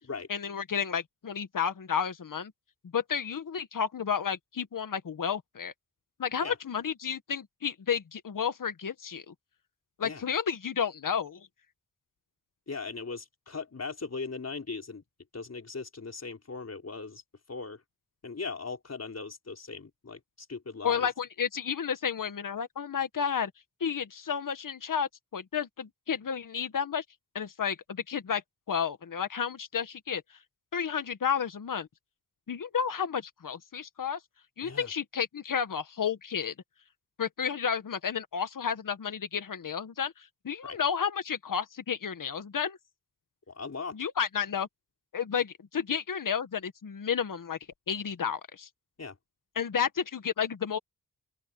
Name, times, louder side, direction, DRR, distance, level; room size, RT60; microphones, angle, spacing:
voice 1, 0.3-2.5 2.9-5.7 6.2-9.3 10.0-11.5 20.8-23.5 23.8-27.0 27.4-28.4 28.7-30.2 30.7-31.9 32.5-34.2 34.6-36.5 37.2-42.8 43.9-44.7 45.1-47.6 47.9-48.7 49.6-50.8, left 7 dB, 65° left, 1.8 m, -31 dB
voice 2, 12.7-15.0 15.3-17.2 17.5-17.8 18.2-20.2 20.5-21.1 34.6-34.9 40.6-40.8 43.5-44.0 49.0-49.1, left 4 dB, 45° left, 4.5 m, -38 dB
open air
cardioid pair, 60°, 35 cm